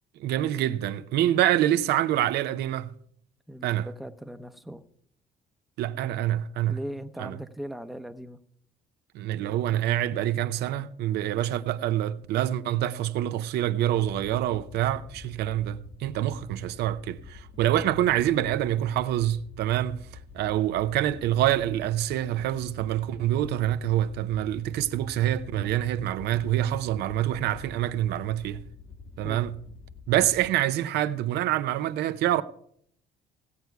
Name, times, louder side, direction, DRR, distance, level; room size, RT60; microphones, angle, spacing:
voice 1, 0.2-2.9 3.6-3.9 5.8-6.8 7.2-7.4 9.1-20.1 20.3-28.6 29.2-29.6 30.1-32.4, right 12 dB, 75° right, 0.6 m, -26 dB
voice 2, 3.5-4.8 6.7-8.4 29.2-29.4, equal, ahead, 0.7 m, -39 dB
Wind / Boat Water vehicle, 13.9-30.5, left 4 dB, 70° left, 1.6 m, -47 dB
16.5 x 8.0 x 4.6 m
cardioid pair, 110°, 17 cm